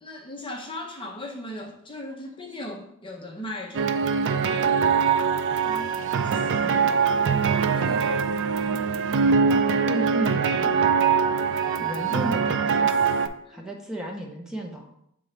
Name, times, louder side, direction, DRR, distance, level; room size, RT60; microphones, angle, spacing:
voice 1, 0.0-4.0 6.2-6.5 7.7-8.3 13.5-13.7, left 1 dB, 25° left, 1 dB, 0.7 m, -37 dB
sound 1, 3.7-13.3, right 6 dB, 60° right, 0.4 m, -23 dB
voice 2, 5.6-7.0 9.8-10.9 11.8-12.9 13.5-14.9, right 1 dB, 5° right, -1 dB, 0.7 m, -34 dB
7.5 x 3.8 x 3.3 m, 0.72 s
head